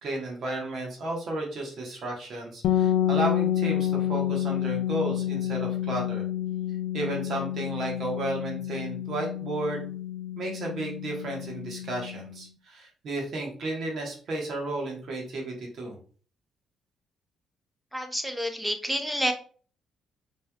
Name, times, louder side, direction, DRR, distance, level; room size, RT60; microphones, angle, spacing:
voice 1, 0.0-6.2 6.9-9.9 10.4-16.0, right 2 dB, 65° right, 0 dB, 1.3 m, -33 dB
sound 1, 2.6-12.4, left 11 dB, 80° left, 0.3 m, -29 dB
voice 2, 17.9-19.3, equal, 5° right, 6 dB, 0.7 m, -29 dB
4.2 x 3.3 x 2.3 m, 0.42 s
cardioid pair, 90°, 0 cm